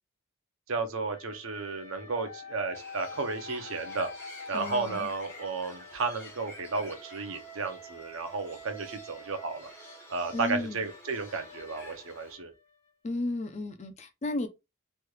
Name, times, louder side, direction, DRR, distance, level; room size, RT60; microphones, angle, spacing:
voice 1, 0.7-4.1 4.5-9.7 10.1-12.5, right 4 dB, 65° right, 0.6 m, -33 dB
sound 1, 1.1-12.9, left 2 dB, 65° left, 1.4 m, -47 dB
Bird, 2.7-12.3, left 1 dB, 15° left, 1.1 m, -50 dB
voice 2, 4.5-5.1 10.3-10.8 13.0-14.5, left 2 dB, 30° left, 0.4 m, -33 dB
3.2 x 3.1 x 2.3 m
head